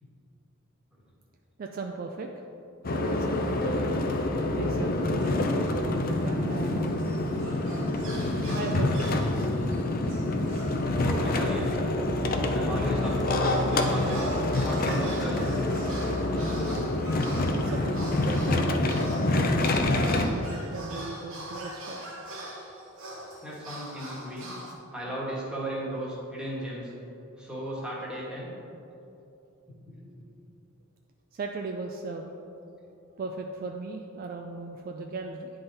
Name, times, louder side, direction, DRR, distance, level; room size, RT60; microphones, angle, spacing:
voice 1, 1.6-2.3 2.9-4.0 4.5-7.0 8.5-9.5 17.5-19.8 20.3-22.0 31.3-32.3 33.2-35.5, right 3 dB, 45° right, 3 dB, 0.3 m, -37 dB
sound 1, 2.8-20.3, left 2 dB, 45° left, 0.5 m, -27 dB
sound 2, 5.0-5.8 6.3-12.3 12.8-24.7, right 1 dB, 75° right, 1.3 m, -42 dB
voice 2, 11.0-11.8 12.5-14.3 14.6-15.6 23.4-24.5 24.9-26.9 27.4-28.5 29.9-30.1, right 1 dB, 5° right, -6 dB, 1.4 m, -35 dB
9.5 x 3.8 x 3.9 m, 2.8 s
head